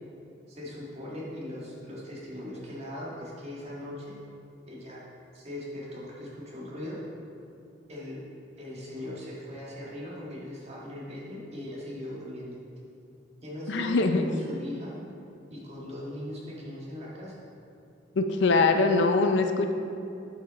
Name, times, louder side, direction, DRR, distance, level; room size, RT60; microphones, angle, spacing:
voice 1, 0.5-4.1 4.7-5.0 5.3-7.0 7.9-8.2 8.6-12.6 13.4-14.9 15.5-17.5, left 1 dB, 35° right, -5 dB, 1.7 m, -39 dB
voice 2, 13.7-14.3 18.2-19.7, left 3 dB, 65° left, 6 dB, 0.5 m, -23 dB
8.1 x 5.1 x 4.1 m, 2.7 s
head